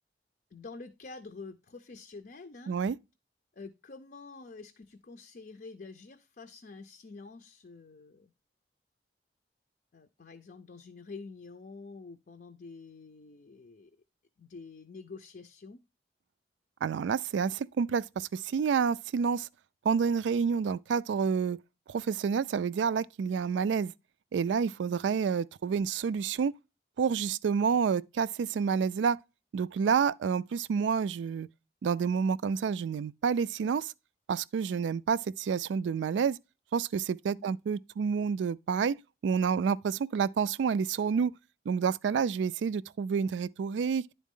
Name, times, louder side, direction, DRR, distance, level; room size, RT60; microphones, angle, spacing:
voice 1, 0.5-2.8 3.5-8.3 9.9-13.9 14.4-15.8 37.3-37.5, left 4 dB, 50° left, 0.5 m, -47 dB
voice 2, 16.8-19.5 19.8-21.6 21.9-23.9 24.3-26.5 27.0-29.2 29.5-31.5 31.8-33.9 34.3-36.4 36.7-39.0 39.2-41.4 41.7-44.0, right 6 dB, 85° right, 0.3 m, -29 dB
10.5 x 4.1 x 3.6 m
head